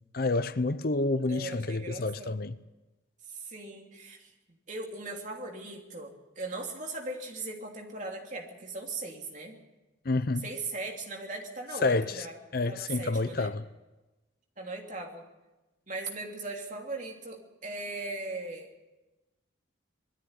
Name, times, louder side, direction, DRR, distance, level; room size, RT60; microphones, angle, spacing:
voice 1, 0.1-2.6 10.0-10.5 11.8-12.3 12.5-13.6, left 3 dB, 50° left, 0.6 m, -28 dB
voice 2, 1.3-2.4 3.3-4.3 4.7-9.6 10.4-12.4 12.7-13.5 14.6-15.3 15.9-18.7, right 2 dB, 40° right, 3.0 m, -39 dB
20.5 x 14.0 x 9.8 m
head